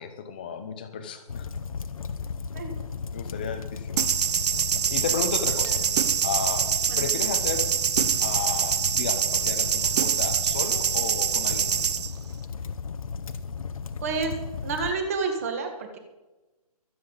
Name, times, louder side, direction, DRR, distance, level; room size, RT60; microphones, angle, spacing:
voice 1, 0.0-1.5 3.1-4.1 4.9-5.8 6.2-7.7 8.2-11.9, left 6 dB, 15° left, 8 dB, 0.6 m, -33 dB
sound 1, 1.3-14.9, left 5 dB, 60° left, 0.9 m, -35 dB
sound 2, 4.0-12.1, right 8 dB, 85° right, 0.4 m, -25 dB
voice 2, 14.0-14.3 14.6-16.0, right 4 dB, 25° right, 5 dB, 1.5 m, -29 dB
23.0 x 7.7 x 4.0 m, 1.1 s
hypercardioid pair, 175°, 20 cm